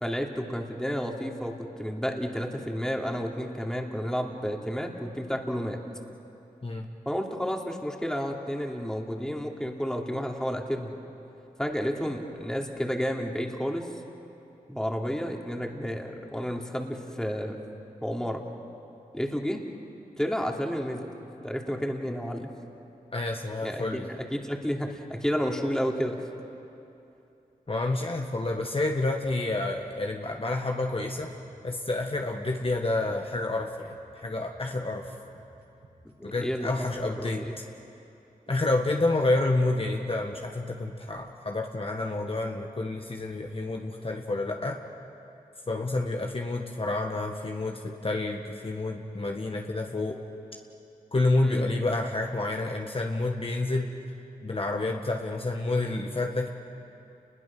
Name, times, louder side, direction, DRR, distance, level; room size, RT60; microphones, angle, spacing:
voice 1, 0.0-5.8 7.0-11.0 11.6-13.9 14.7-17.6 18.0-18.4 19.1-19.6 20.2-21.1 21.4-22.5 23.6-26.3 36.2-36.9 37.2-37.5 51.4-51.6, equal, 5° left, 1 dB, 2.9 m, -31 dB
voice 2, 23.1-24.1 27.7-31.3 31.6-35.1 36.2-37.4 38.5-44.8 45.7-50.2 51.1-53.9 54.4-56.5, left 2 dB, 40° left, 1 dB, 1.6 m, -29 dB
sound 1, 28.9-29.9 30.8-37.5 38.5-40.7, right 3 dB, 70° right, 7.5 m, -53 dB
29.5 x 21.0 x 6.1 m, 2.8 s
cardioid pair, 50°, 15 cm